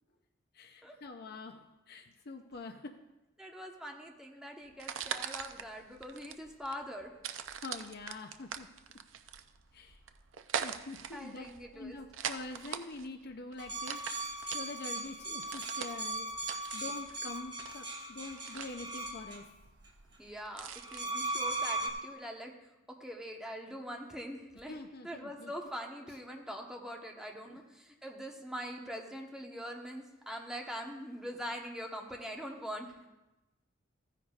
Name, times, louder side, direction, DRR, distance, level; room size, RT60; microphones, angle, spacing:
voice 1, 0.5-3.0 7.6-8.7 9.7-10.0 10.6-11.5 11.7-16.3 16.7-19.6 24.7-25.5 27.4-27.6, left 3 dB, 55° left, 5 dB, 0.5 m, -45 dB
voice 2, 3.4-7.1 11.1-12.0 20.2-22.5 23.0-24.7 25.0-32.9, equal, 5° right, 0 dB, 1.0 m, -43 dB
sound 1, 4.7-21.0, right 8 dB, 80° right, 0.5 m, -43 dB
sound 2, 13.6-19.4 20.7-21.9, right 2 dB, 25° right, 1.2 m, -38 dB
14.5 x 9.9 x 2.4 m, 1.0 s
head